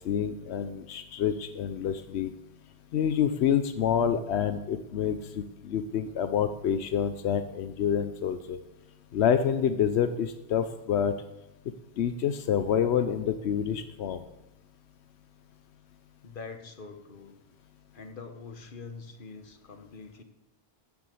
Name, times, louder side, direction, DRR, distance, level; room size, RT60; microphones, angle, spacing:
voice 1, 0.0-2.3 2.9-8.6 9.1-11.1 12.0-14.2, left 8 dB, 85° left, 10 dB, 0.9 m, -27 dB
voice 2, 16.2-17.3 17.9-20.2, left 4 dB, 55° left, 6 dB, 1.4 m, -44 dB
13.0 x 7.2 x 7.7 m, 0.95 s
omnidirectional pair, 1.1 m